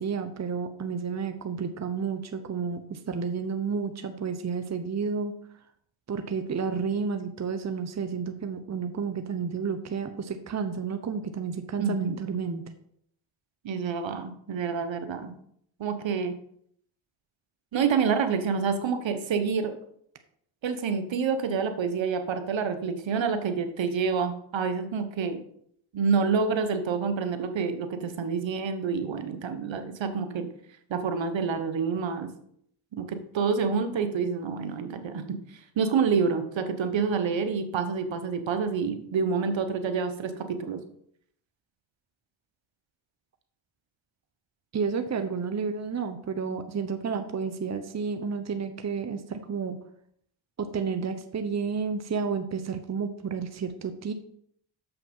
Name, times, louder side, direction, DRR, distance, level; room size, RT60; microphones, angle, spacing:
voice 1, 0.0-5.3 6.1-12.7 44.7-49.8 50.6-54.1, right 5 dB, 35° right, 8 dB, 0.9 m, -31 dB
voice 2, 11.8-12.2 13.6-15.3 15.8-16.3 17.7-19.8 20.6-25.4 25.9-30.5 30.9-32.3 32.9-40.8, right 5 dB, 65° right, 8 dB, 1.2 m, -28 dB
6.9 x 5.8 x 5.4 m, 0.68 s
cardioid pair, 60°, 48 cm